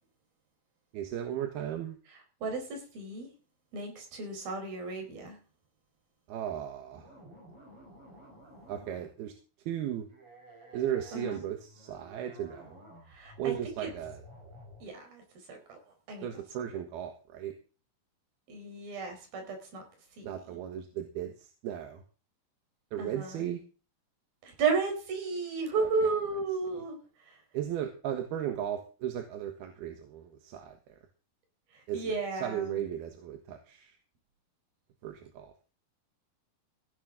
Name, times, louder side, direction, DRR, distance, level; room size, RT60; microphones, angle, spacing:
voice 1, 0.9-2.0 6.3-7.1 8.7-9.3 9.7-10.1 10.7-12.7 13.4-14.2 16.2-17.5 20.2-22.0 22.9-23.6 27.5-30.8 31.9-34.0 35.0-35.5, right 10 dB, 85° right, 5 dB, 3.4 m, -36 dB
voice 2, 2.4-3.3 3.7-5.4 11.1-11.4 13.1-13.5 13.8-13.9 14.8-15.2 15.5-15.8 16.1-16.7 18.5-19.8 20.2-20.6 23.0-23.4 24.4-27.0 27.2-27.4 31.7-32.8, right 4 dB, 70° right, 4 dB, 6.1 m, -34 dB
sound 1, 6.9-9.3 10.1-15.1, right 1 dB, 35° right, 6.1 m, -53 dB
16.5 x 11.5 x 3.8 m, 0.36 s
omnidirectional pair, 4.4 m